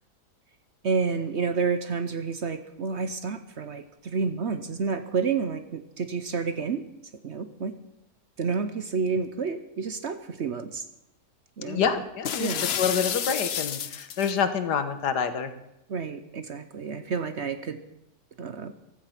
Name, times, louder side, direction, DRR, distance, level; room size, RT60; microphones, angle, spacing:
voice 1, 0.8-6.8 7.2-7.7 8.4-10.9 11.6-11.8 12.4-12.7 15.9-17.8 18.4-18.7, right 5 dB, 50° right, 10 dB, 0.9 m, -29 dB
voice 2, 11.6-15.5, left 6 dB, 80° left, 10 dB, 1.8 m, -27 dB
sound 1, 12.2-14.4, left 9 dB, 55° left, 0.7 m, -30 dB
15.5 x 13.0 x 5.9 m, 0.88 s
omnidirectional pair, 1.8 m